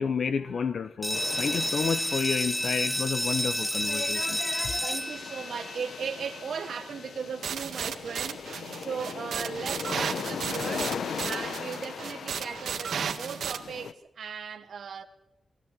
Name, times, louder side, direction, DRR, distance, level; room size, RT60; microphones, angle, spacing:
voice 1, 0.0-5.0, left 6 dB, 55° left, 0.8 m, -30 dB
sound 1, 1.0-6.5, equal, 5° left, 0.8 m, -30 dB
sound 2, 1.1-13.9, left 6 dB, 85° left, 1.0 m, -39 dB
voice 2, 4.8-11.0 11.3-15.0, right 6 dB, 70° right, 1.4 m, -37 dB
sound 3, 7.4-13.6, right 7 dB, 85° right, 1.8 m, -34 dB
20.5 x 16.5 x 8.2 m
wide cardioid pair, 175°, 0 cm